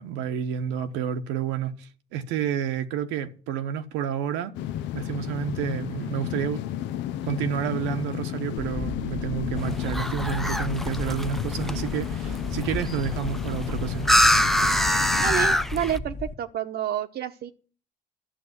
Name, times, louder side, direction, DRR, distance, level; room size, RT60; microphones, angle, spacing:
voice 1, 0.0-4.5 4.9-6.7 7.2-14.1, right 9 dB, 85° right, 1.1 m, -30 dB
sound 1, 4.5-15.6, left 12 dB, 75° left, 0.7 m, -33 dB
sound 2, 8.6-16.3, left 2 dB, 40° left, 1.6 m, -35 dB
Seagull Calls, 9.6-16.0, equal, ahead, 0.7 m, -25 dB
voice 2, 15.2-17.5, right 10 dB, 60° right, 0.9 m, -29 dB
11.5 x 7.0 x 9.5 m
supercardioid pair, 75°, 19 cm